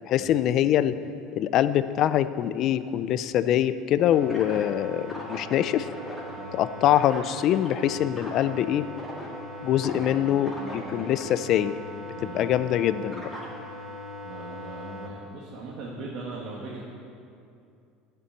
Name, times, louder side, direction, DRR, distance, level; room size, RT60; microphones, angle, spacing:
voice 1, 0.1-1.0 1.3-5.9 6.5-8.9 9.6-11.7 12.2-13.3, left 11 dB, 45° left, 14 dB, 0.4 m, -24 dB
sound 1, 4.1-15.1, left 1 dB, 5° right, 2.2 m, -39 dB
voice 2, 9.9-11.1 12.1-12.5 14.2-16.8, right 3 dB, 50° right, -5 dB, 1.7 m, -40 dB
11.0 x 6.9 x 8.4 m, 2.5 s
cardioid pair, 155°, 0 cm